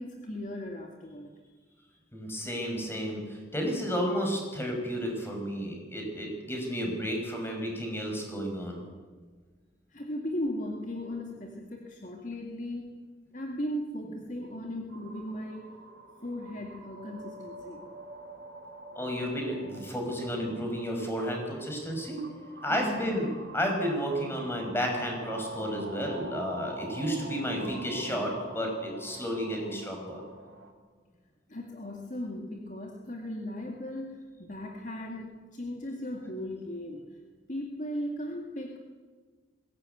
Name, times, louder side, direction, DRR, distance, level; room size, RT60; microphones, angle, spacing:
voice 1, 0.0-1.3 9.9-13.0 13.3-15.8 16.2-17.8 22.7-23.1 31.5-37.1 37.5-38.8, left 1 dB, 45° left, 1 dB, 2.0 m, -37 dB
voice 2, 2.1-8.8 19.0-22.2 22.6-30.2, equal, 15° left, 2 dB, 5.6 m, -32 dB
sound 1, 14.9-30.7, right 1 dB, 85° right, 4.2 m, -45 dB
21.0 x 16.5 x 9.2 m, 1.5 s
head